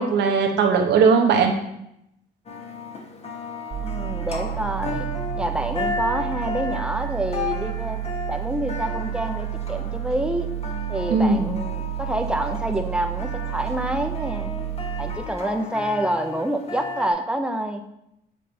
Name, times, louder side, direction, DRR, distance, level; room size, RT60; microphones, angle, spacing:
voice 1, 0.0-1.5 11.1-11.6, right 5 dB, 70° right, 3 dB, 1.0 m, -19 dB
sound 1, 2.5-17.1, left 4 dB, 35° left, 1.0 m, -34 dB
sound 2, 3.7-15.2, right 13 dB, 40° right, 0.8 m, -30 dB
voice 2, 3.8-5.1 5.4-10.5 10.9-14.5 15.0-17.8, right 1 dB, 5° right, 5 dB, 0.7 m, -27 dB
7.7 x 4.1 x 5.2 m, 0.81 s
cardioid pair, 115°, 18 cm